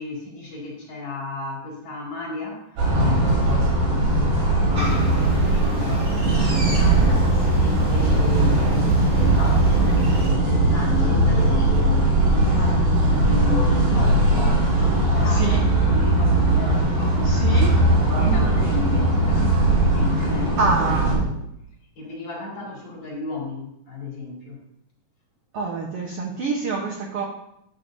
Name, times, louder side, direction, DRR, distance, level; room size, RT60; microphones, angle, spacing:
voice 1, 0.0-12.0 12.3-17.8 18.2-19.5 19.8-21.4 22.0-24.6, left 2 dB, 55° left, -3 dB, 3.5 m, -34 dB
sound 1, 2.8-21.2, right 1 dB, 90° right, 5.1 m, -19 dB
sound 2, 4.7-10.3, right 2 dB, 40° right, 1.2 m, -32 dB
voice 2, 17.2-17.7 20.6-21.2 25.5-27.2, right 3 dB, 75° right, -1 dB, 1.4 m, -26 dB
11.5 x 7.8 x 2.6 m, 0.79 s
omnidirectional pair, 4.0 m